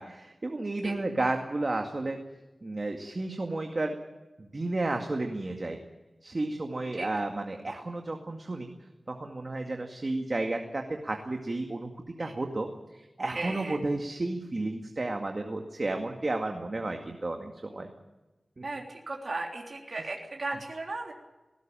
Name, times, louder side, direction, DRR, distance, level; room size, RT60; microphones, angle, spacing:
voice 1, 0.0-2.2 2.6-4.0 4.4-5.8 6.2-8.7 9.1-11.9 12.2-12.7 12.9-17.9 18.6-18.7 20.0-20.1, right 2 dB, 45° right, 3 dB, 2.1 m, -32 dB
voice 2, 13.3-13.8 18.6-21.1, right 2 dB, 60° right, 0 dB, 3.6 m, -36 dB
19.0 x 17.5 x 9.1 m, 1.1 s
wide cardioid pair, 85°, 0 cm